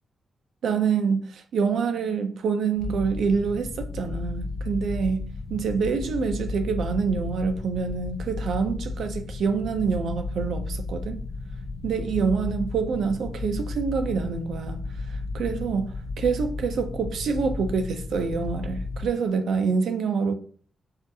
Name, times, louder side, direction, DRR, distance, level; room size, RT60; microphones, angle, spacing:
voice 1, 0.6-11.2 11.8-14.8 15.1-20.3, right 5 dB, 80° right, 0.5 m, -26 dB
sound 1, 2.8-19.1, left 3 dB, 60° left, 0.7 m, -34 dB
4.8 x 2.5 x 2.7 m
wide cardioid pair, 165°, 0 cm